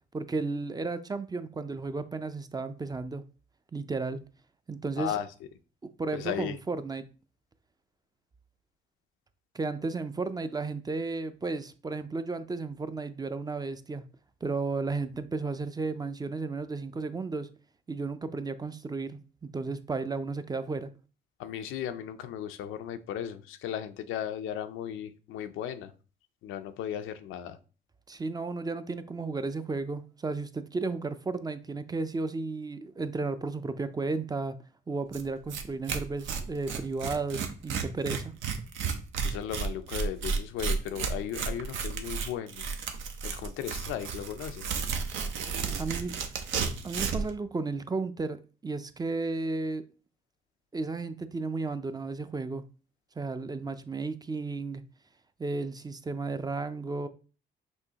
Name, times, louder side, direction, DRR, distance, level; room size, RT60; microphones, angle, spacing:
voice 1, 0.1-3.2 3.7-4.2 4.7-5.1 5.8-7.0 9.5-14.0 14.4-17.5 17.9-19.2 19.5-20.9 28.1-34.6 34.9-38.3 45.8-46.1 46.8-48.4 48.6-49.8 50.7-52.6 53.2-54.8 55.4-57.1, right 3 dB, 20° right, 0.4 m, -33 dB
voice 2, 5.0-5.3 6.1-6.6 21.4-25.9 26.4-27.6 39.2-42.7 43.2-44.7, left 10 dB, 85° left, 0.5 m, -36 dB
Tearing, 35.1-35.2 35.5-35.6 35.9-47.3, right 5 dB, 75° right, 0.7 m, -32 dB
6.2 x 2.7 x 2.8 m
cardioid pair, 90°, 20 cm